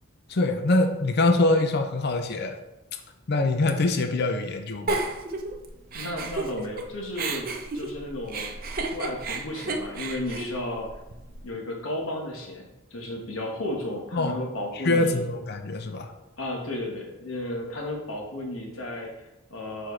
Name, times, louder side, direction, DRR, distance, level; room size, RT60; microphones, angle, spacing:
voice 1, 0.3-2.6 2.9-3.0 3.3-5.1 14.1-14.4 14.7-16.1, left 2 dB, 55° left, 6 dB, 0.6 m, -24 dB
Giggle, 4.9-6.8 7.1-11.4, right 3 dB, 45° right, 0.6 m, -32 dB
voice 2, 5.9-8.5 8.9-10.9 11.4-15.2 16.4-19.9, left 1 dB, 85° left, 1 dB, 1.2 m, -33 dB
6.9 x 4.4 x 3.1 m, 0.95 s
head